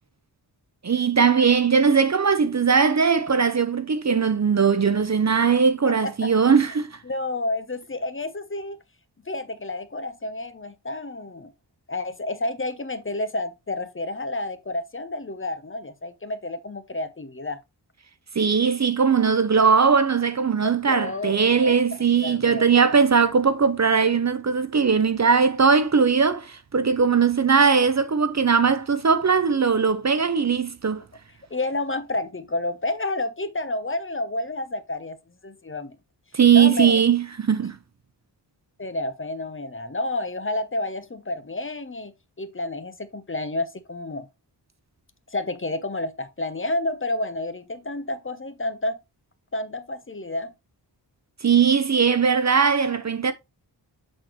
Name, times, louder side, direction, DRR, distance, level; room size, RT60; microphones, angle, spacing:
voice 1, 0.8-6.9 18.4-31.0 36.3-37.8 51.4-53.3, right 6 dB, 40° right, 0.6 m, -19 dB
voice 2, 5.8-6.3 7.0-8.8 9.2-11.5 11.9-17.6 20.9-21.8 22.2-22.7 31.5-35.2 35.4-36.0 36.5-37.0 38.8-42.1 42.4-44.3 45.3-49.0 49.5-50.5, left 2 dB, 30° left, 0.8 m, -30 dB
7.5 x 4.3 x 3.1 m
wide cardioid pair, 80°, 43 cm